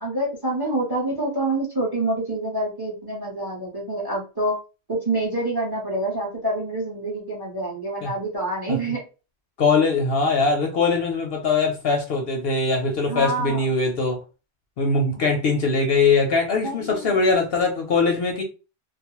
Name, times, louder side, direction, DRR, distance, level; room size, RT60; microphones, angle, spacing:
voice 1, 0.0-4.6 4.9-9.0 13.1-13.7 15.2-15.3 16.6-17.2, right 2 dB, 25° right, -2 dB, 0.6 m, -27 dB
voice 2, 9.6-14.2 14.8-18.4, left 4 dB, 65° left, 2 dB, 0.7 m, -21 dB
2.3 x 2.0 x 2.9 m, 0.32 s
omnidirectional pair, 1.3 m